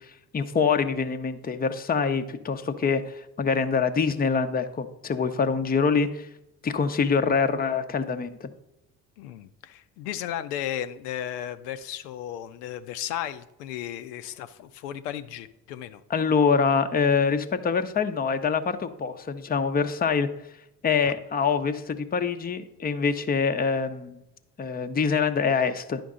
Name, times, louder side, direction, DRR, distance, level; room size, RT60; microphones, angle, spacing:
voice 1, 0.3-6.3 6.6-8.5 16.1-20.3 20.8-24.2 24.6-26.0, left 5 dB, 20° left, 8 dB, 0.6 m, -25 dB
voice 2, 9.2-16.0, left 11 dB, 80° left, 10 dB, 0.6 m, -35 dB
10.0 x 5.2 x 3.7 m, 0.87 s
hypercardioid pair, 55°, 46 cm